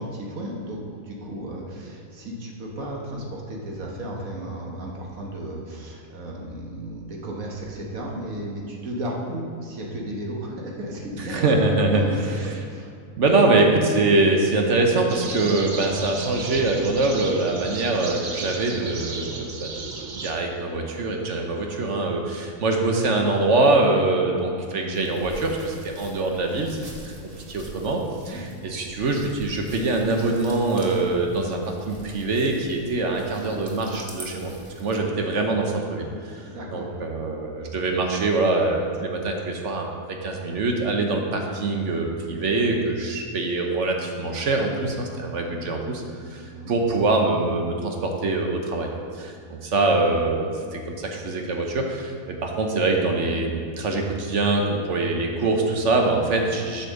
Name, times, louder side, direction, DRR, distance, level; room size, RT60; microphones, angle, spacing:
voice 1, 0.0-12.9 28.3-28.5 36.4-36.9 46.5-46.8, right 1 dB, 75° right, -1 dB, 1.8 m, -34 dB
voice 2, 11.2-12.5 13.2-26.8 27.0-27.1 27.5-34.5 34.8-48.9 49.2-56.9, right 2 dB, 60° right, 2 dB, 1.3 m, -24 dB
sound 1, 15.1-20.3, right 4 dB, 45° right, 0.7 m, -35 dB
sound 2, 24.9-35.0, equal, 30° right, 1.3 m, -44 dB
8.5 x 5.2 x 6.4 m, 2.3 s
omnidirectional pair, 1.4 m